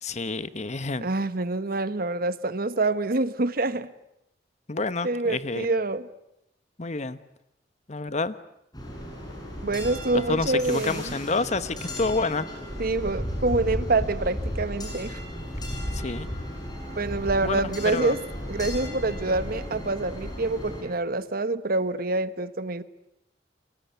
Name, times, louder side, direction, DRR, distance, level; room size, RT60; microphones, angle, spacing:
voice 1, 0.0-1.1 4.7-5.7 6.8-7.2 7.9-8.3 10.1-12.5 15.9-16.3 17.4-18.2, left 3 dB, 40° left, 1.1 m, -28 dB
voice 2, 1.0-3.9 5.0-6.1 9.6-11.1 12.8-15.2 17.0-18.2 18.5-22.8, right 2 dB, 55° right, 1.1 m, -26 dB
sound 1, 8.7-20.8, equal, 25° left, 7.6 m, -34 dB
29.5 x 24.0 x 8.2 m
head